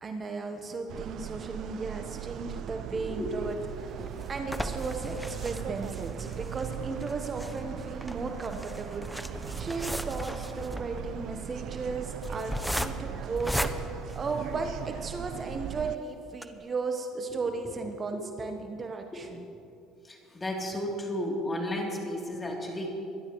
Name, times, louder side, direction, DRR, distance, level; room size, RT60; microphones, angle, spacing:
voice 1, 0.0-19.5, right 3 dB, 35° right, 5 dB, 1.1 m, -35 dB
sound 1, 0.9-16.0, right 10 dB, 60° right, 0.5 m, -39 dB
voice 2, 2.9-3.6 4.0-4.1 18.1-18.2 19.1-19.2 20.0-22.9, left 1 dB, 20° left, -1 dB, 3.1 m, -34 dB
sound 2, 3.5-14.9 15.4-15.5 15.8-15.9 16.3-16.4, equal, ahead, 0.7 m, -37 dB
23.5 x 11.5 x 3.1 m, 2.6 s
hypercardioid pair, 75°, 0 cm